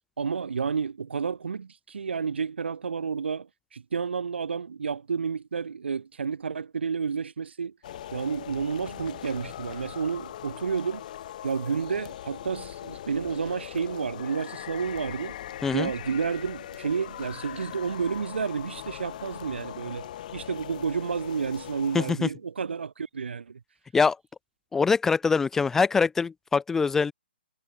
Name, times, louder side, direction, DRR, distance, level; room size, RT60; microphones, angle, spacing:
voice 1, 0.2-7.7 8.1-11.0 11.4-15.4 15.7-23.6, right 6 dB, 75° right, 1.4 m, -31 dB
sound 1, 7.8-22.1, left 11 dB, 45° left, 1.2 m, -40 dB
voice 2, 21.9-22.3 23.9-24.2 24.7-27.1, left 5 dB, 5° left, 0.4 m, -23 dB
hypercardioid pair, 150°, 6 cm